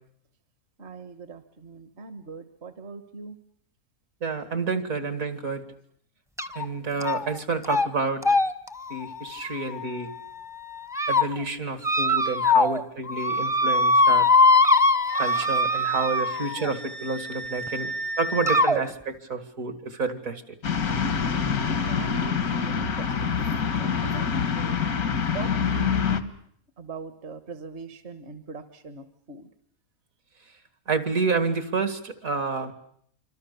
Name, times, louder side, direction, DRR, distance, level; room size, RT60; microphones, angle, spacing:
voice 1, 0.8-3.3 21.3-24.3 24.6-24.8 25.3-26.3 26.8-29.5, right 4 dB, 50° right, 9 dB, 1.5 m, -41 dB
voice 2, 4.2-5.6 6.5-8.2 8.9-10.1 11.1-14.3 15.2-17.9 18.2-20.6 30.9-32.7, right 4 dB, 70° right, 9 dB, 2.6 m, -29 dB
sound 1, 6.4-6.7 7.0-7.4 7.6-7.9 8.2-10.2 10.7-11.2 11.8-12.8 13.1-16.7 17.7-17.8 18.5-18.8, left 2 dB, 5° right, 0.7 m, -22 dB
Wind instrument woodwind instrument, 15.1-18.6, right 1 dB, 90° right, 4.0 m, -35 dB
sound 2, 20.6-26.2, left 6 dB, 90° left, 1.9 m, -25 dB
27.5 x 25.5 x 6.8 m, 0.65 s
omnidirectional pair, 1.5 m